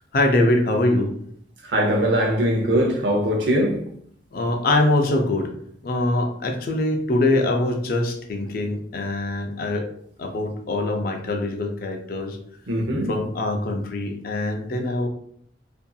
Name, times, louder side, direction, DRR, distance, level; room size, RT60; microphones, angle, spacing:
voice 1, 0.1-1.1 4.3-5.5 5.8-9.8 10.2-12.4 13.1-15.1, left 2 dB, 55° left, 0.4 m, -23 dB
voice 2, 1.6-3.8 12.7-13.1, equal, 80° right, 0.6 m, -21 dB
2.7 x 2.5 x 2.2 m
head